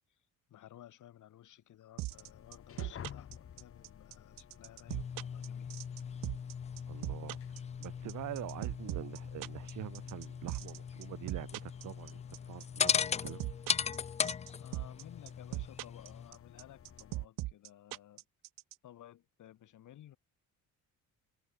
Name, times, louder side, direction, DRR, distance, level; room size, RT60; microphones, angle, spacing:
voice 1, 0.5-6.0 14.6-18.2 18.8-20.2, left 12 dB, 65° left, 4.6 m, -56 dB
sound 1, 2.0-18.7, right 19 dB, 90° right, 1.2 m, -39 dB
sound 2, 2.1-17.3, left 9 dB, 45° left, 1.7 m, -55 dB
sound 3, 4.9-16.3, left 7 dB, 20° left, 0.4 m, -38 dB
voice 2, 6.9-7.4 7.8-12.2 12.5-13.5, right 14 dB, 65° right, 1.0 m, -45 dB
cardioid pair, 120°, 32 cm